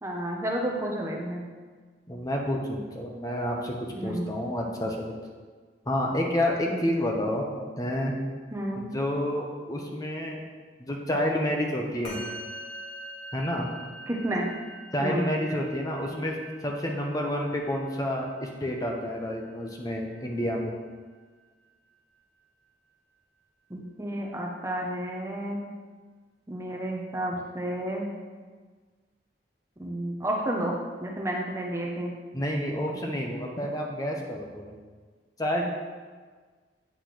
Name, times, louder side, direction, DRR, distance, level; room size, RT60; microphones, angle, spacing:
voice 1, 0.0-1.5 3.9-4.3 6.7-6.9 8.5-8.8 14.1-14.5 15.0-15.3 23.7-25.6 26.5-28.1 29.8-30.7 31.0-32.1, right 1 dB, 15° right, -1 dB, 0.7 m, -31 dB
voice 2, 2.1-3.7 4.0-5.1 5.9-7.5 7.8-8.1 8.7-10.4 10.8-12.2 13.3-13.7 14.9-16.3 16.6-20.7 32.3-34.7 35.4-35.6, left 1 dB, 20° left, 0 dB, 0.8 m, -29 dB
Musical instrument, 12.0-21.6, right 1 dB, 65° left, 1.7 m, -45 dB
8.3 x 3.3 x 5.9 m, 1.5 s
head